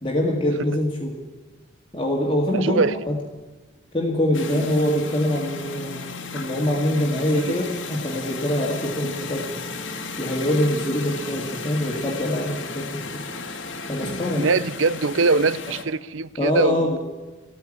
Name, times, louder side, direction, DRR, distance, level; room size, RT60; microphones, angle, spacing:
voice 1, 0.0-1.2 1.9-3.1 3.9-6.0 6.3-9.7 10.2-13.2 13.9-14.5 16.4-17.0, left 1 dB, 25° left, -2 dB, 2.0 m, -24 dB
voice 2, 2.5-2.9 4.5-4.7 7.3-7.5 9.0-9.1 14.4-17.0, right 4 dB, 80° right, 18 dB, 0.6 m, -22 dB
sound 1, 4.3-15.8, left 3 dB, 75° left, 2.0 m, -34 dB
15.0 x 9.4 x 9.8 m, 1.2 s
head